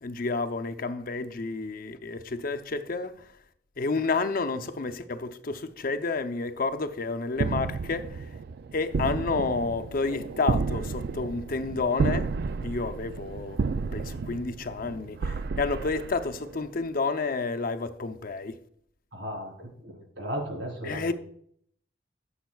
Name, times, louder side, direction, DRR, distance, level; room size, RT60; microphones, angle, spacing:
voice 1, 0.0-3.3 3.8-8.3 8.7-12.3 12.6-13.6 13.9-18.6 20.8-21.1, left 3 dB, 50° left, 0.6 m, -30 dB
sound 1, 7.4-16.7, right 4 dB, 60° right, 0.4 m, -32 dB
voice 2, 19.1-21.1, equal, 80° right, 3.6 m, -36 dB
14.5 x 7.2 x 2.3 m
head